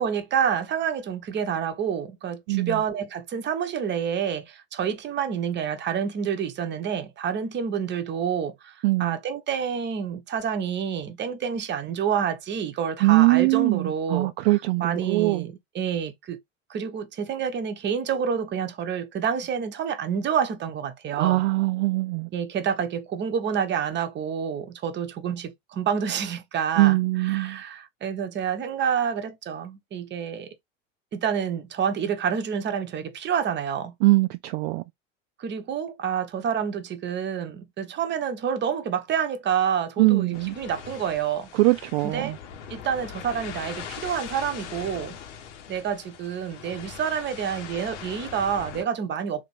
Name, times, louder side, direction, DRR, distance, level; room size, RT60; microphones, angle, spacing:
voice 1, 0.0-14.5 14.8-16.4 16.7-21.4 22.3-30.5 31.1-33.9 35.4-41.5 42.0-42.4 42.7-45.2 45.7-49.5, right 7 dB, 30° right, 0.8 m, -28 dB
voice 2, 2.5-2.8 8.8-9.2 13.0-15.5 21.2-22.3 26.8-27.6 34.0-34.8 40.0-40.6 41.5-42.4, right 21 dB, 55° right, 0.5 m, -22 dB
sound 1, 40.3-48.9, left 7 dB, 70° left, 1.0 m, -41 dB
3.6 x 2.5 x 3.1 m
hypercardioid pair, 85°, 37 cm